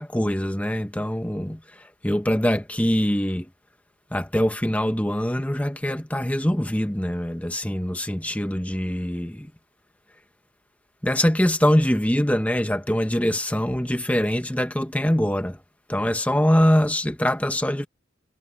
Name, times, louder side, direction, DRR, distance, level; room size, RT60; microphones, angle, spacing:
voice 1, 0.0-3.5 4.1-9.5 11.0-15.6 15.9-17.9, equal, 5° left, 1.1 m, -23 dB
head